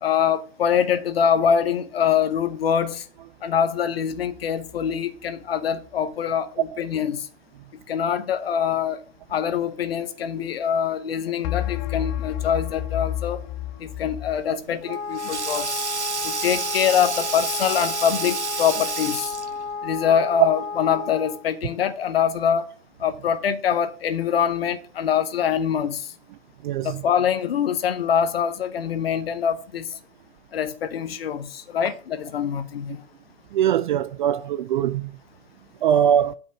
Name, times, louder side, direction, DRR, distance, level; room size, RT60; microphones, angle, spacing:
voice 1, 0.0-3.0 3.4-7.3 7.9-9.0 9.3-13.4 13.8-15.7 16.2-19.3 19.8-22.7 23.0-26.1 26.8-29.9 30.5-33.0, left 8 dB, 60° left, 1.0 m, -24 dB
sound 1, 4.1-5.0 11.4-14.5, left 13 dB, 30° left, 0.6 m, -30 dB
Sink (filling or washing), 14.5-19.7, right 4 dB, 85° right, 0.7 m, -30 dB
Wind instrument woodwind instrument, 14.8-21.4, left 5 dB, 85° left, 1.1 m, -32 dB
voice 2, 33.5-35.1 35.8-36.3, right 10 dB, 50° right, 0.4 m, -21 dB
8.7 x 4.5 x 7.0 m
figure-of-eight pair, 100°, 33 cm